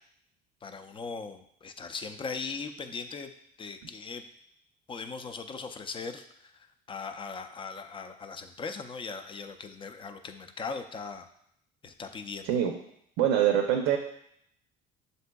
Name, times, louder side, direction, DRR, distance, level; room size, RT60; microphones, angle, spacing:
voice 1, 0.6-3.3 3.6-4.2 4.9-11.3 11.8-12.5, left 4 dB, 25° left, 8 dB, 0.4 m, -39 dB
voice 2, 13.2-14.0, right 10 dB, 90° right, 2 dB, 0.5 m, -24 dB
7.3 x 2.6 x 2.2 m, 0.73 s
supercardioid pair, 90°, 20 cm